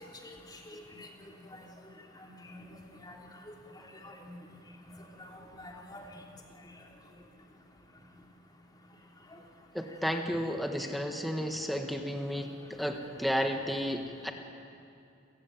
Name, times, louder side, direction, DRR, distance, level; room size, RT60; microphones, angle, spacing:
voice 1, 0.7-1.1 1.5-1.6 2.4-2.7 3.0-3.2 4.0-4.3 5.2-6.1, left 1 dB, 20° left, 0 dB, 3.1 m, -47 dB
voice 2, 9.7-14.3, equal, ahead, 3 dB, 1.4 m, -32 dB
29.0 x 15.5 x 9.2 m, 2.5 s
head